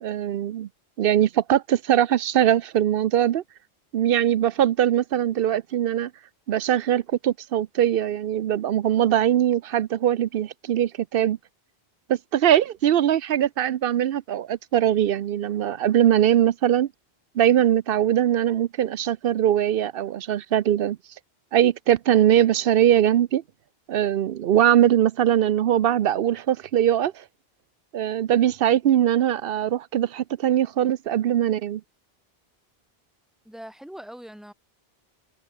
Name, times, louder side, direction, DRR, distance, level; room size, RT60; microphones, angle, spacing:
voice 1, 0.0-0.7 1.0-3.4 3.9-6.1 6.5-11.4 12.1-16.9 17.4-21.0 21.5-23.4 23.9-27.2 27.9-31.8, right 11 dB, 65° right, 0.8 m, -21 dB
voice 2, 33.4-34.5, equal, ahead, 2.7 m, -41 dB
omnidirectional pair, 1.0 m